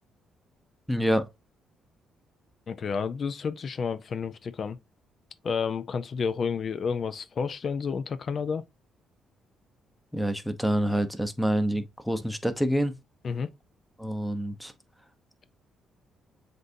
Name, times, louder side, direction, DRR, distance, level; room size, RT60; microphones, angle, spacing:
voice 1, 0.9-1.3 10.1-13.0 14.0-14.7, equal, ahead, 0.8 m, -27 dB
voice 2, 2.7-4.8 5.4-8.6 13.2-13.5, left 5 dB, 50° left, 0.4 m, -30 dB
7.8 x 2.6 x 2.6 m
cardioid pair, 90°, 0 cm